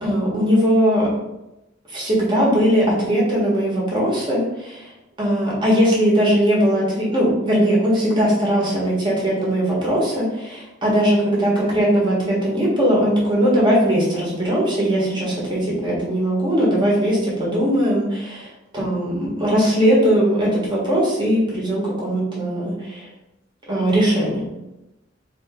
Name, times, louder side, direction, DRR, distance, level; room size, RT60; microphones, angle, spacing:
voice 1, 0.0-1.1 1.9-4.9 5.2-23.1 23.7-24.4, equal, 25° right, -6 dB, 1.6 m, -19 dB
3.6 x 3.1 x 4.4 m, 0.94 s
head